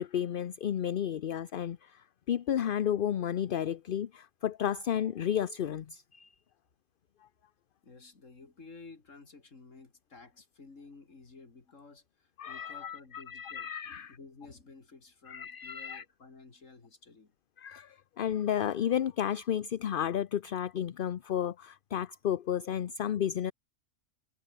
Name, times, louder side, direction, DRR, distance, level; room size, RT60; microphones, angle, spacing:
voice 1, 0.0-6.3 12.4-14.2 15.3-16.0 17.6-23.5, left 9 dB, 50° left, 0.7 m, -32 dB
voice 2, 7.8-17.3, left 4 dB, 75° left, 3.1 m, -53 dB
omnidirectional pair, 1.3 m